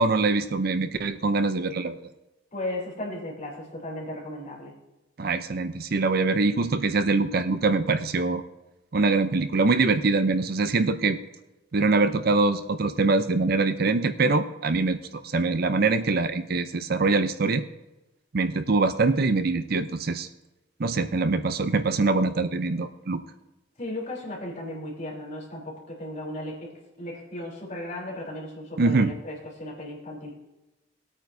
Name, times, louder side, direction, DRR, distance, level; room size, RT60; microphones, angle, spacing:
voice 1, 0.0-2.0 5.2-8.4 8.9-11.2 11.7-17.6 18.3-20.3 20.8-23.2 28.8-29.1, right 3 dB, 50° right, 10 dB, 0.5 m, -23 dB
voice 2, 2.5-4.7 23.8-26.7 27.0-30.3, left 1 dB, 40° left, -4 dB, 3.6 m, -36 dB
19.5 x 8.8 x 2.7 m, 1.0 s
head